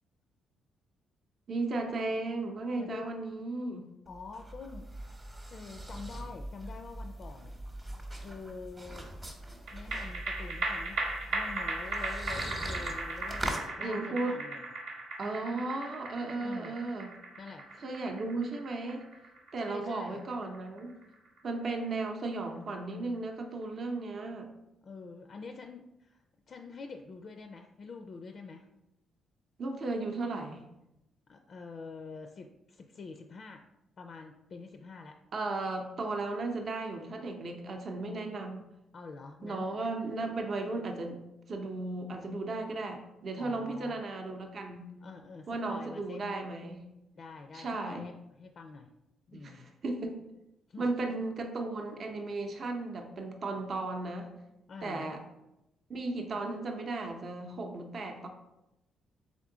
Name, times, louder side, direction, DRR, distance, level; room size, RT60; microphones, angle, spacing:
voice 1, 1.5-3.9 13.8-14.4 15.2-17.1 17.8-19.0 19.5-20.9 21.4-24.5 29.6-30.6 35.3-38.6 39.4-41.2 41.5-44.9 45.5-46.8 47.5-48.0 49.3-50.2 50.8-54.3 54.8-55.2 55.9-58.3, right 2 dB, 50° right, 4 dB, 0.6 m, -35 dB
voice 2, 2.8-3.3 4.1-4.9 5.5-7.6 8.2-9.4 9.7-11.0 11.3-14.7 16.4-16.8 17.4-17.7 19.6-20.2 24.8-28.7 31.3-33.7 34.0-35.2 38.9-39.9 43.4-44.0 45.0-46.3 47.2-48.9 49.3-49.7 50.7-51.2 54.7-55.1, left 4 dB, 50° left, 5 dB, 0.4 m, -46 dB
sound 1, 4.1-13.7, right 1 dB, 20° right, 0.9 m, -42 dB
sound 2, 9.7-22.3 22.7-22.8, right 2 dB, 85° right, 1.1 m, -38 dB
3.6 x 3.6 x 3.7 m, 0.90 s
cardioid pair, 90°, 0 cm